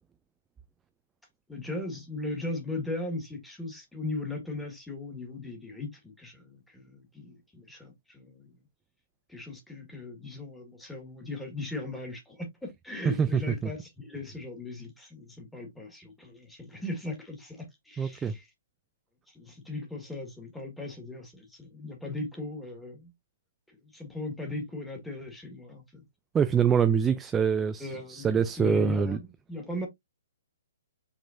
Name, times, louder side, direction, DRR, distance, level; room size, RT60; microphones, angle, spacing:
voice 1, 1.5-8.5 9.3-18.5 19.3-23.1 23.7-26.0 27.8-29.9, left 2 dB, 5° left, 1.7 m, -38 dB
voice 2, 18.0-18.3 26.3-29.2, right 6 dB, 15° right, 0.3 m, -25 dB
5.1 x 3.7 x 2.6 m
hypercardioid pair, 145°, 0 cm